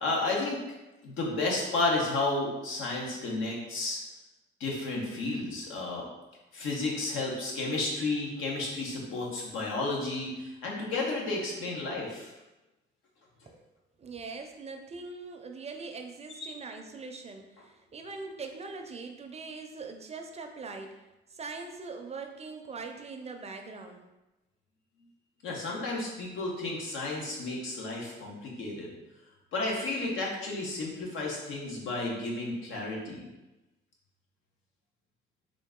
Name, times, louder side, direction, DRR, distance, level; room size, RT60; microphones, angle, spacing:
voice 1, 0.0-0.6 1.0-4.0 4.6-6.0 6.5-12.3 25.4-28.9 29.5-33.2, left 2 dB, 85° left, -2 dB, 1.0 m, -32 dB
voice 2, 14.0-21.0 21.3-24.0, right 4 dB, 35° right, 4 dB, 0.5 m, -42 dB
3.7 x 2.5 x 3.7 m, 1.0 s
cardioid pair, 90°, 20 cm